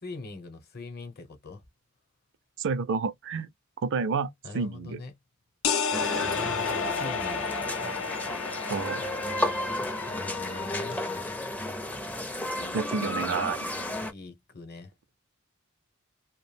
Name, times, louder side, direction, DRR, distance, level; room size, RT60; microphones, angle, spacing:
voice 1, 0.0-1.6 4.4-5.1 6.2-7.8 10.1-11.0 13.2-13.6 13.9-14.9, left 3 dB, 50° left, 0.9 m, -42 dB
voice 2, 2.6-3.5 3.8-5.0 8.7-9.0 12.7-13.6, right 5 dB, 60° right, 0.4 m, -29 dB
sound 1, 5.6-11.2, left 6 dB, 80° left, 0.6 m, -32 dB
sound 2, 5.9-14.1, left 1 dB, 5° left, 0.4 m, -33 dB
2.3 x 2.1 x 3.2 m
head